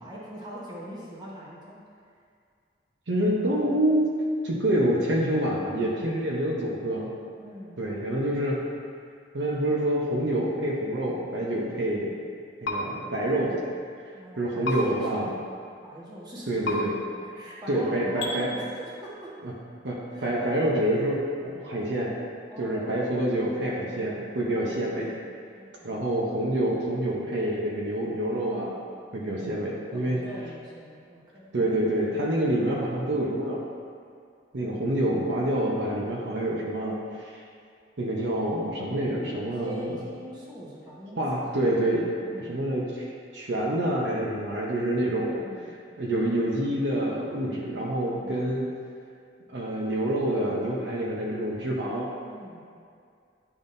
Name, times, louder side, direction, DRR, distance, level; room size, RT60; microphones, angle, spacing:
voice 1, 0.0-1.8 5.8-6.2 7.4-7.8 12.0-12.3 14.1-15.4 15.8-16.8 17.2-19.4 20.1-20.5 22.5-23.1 24.8-25.0 25.5-26.1 29.2-29.6 29.9-31.5 34.6-34.9 39.4-41.2 41.5-41.7 42.2-42.6 45.2-45.7 48.1-48.5 52.2-52.6, equal, 25° right, -7 dB, 1.2 m, -42 dB
voice 2, 3.1-4.1 4.4-7.1 7.8-8.6 9.3-12.2 12.6-13.6 14.4-15.3 16.5-17.0 17.7-18.5 19.4-19.5 19.8-22.1 22.6-25.1 25.8-28.8 29.1-30.2 31.5-33.6 34.5-37.3 38.0-40.0 41.2-43.1 43.3-45.4 46.0-48.7 49.5-52.1, right 1 dB, 70° right, -3 dB, 0.8 m, -27 dB
sound 1, 12.6-12.8 14.6-14.8 16.6-16.8 18.2-18.3, left 2 dB, 90° left, 1.0 m, -29 dB
10.0 x 3.6 x 2.6 m, 2.3 s
head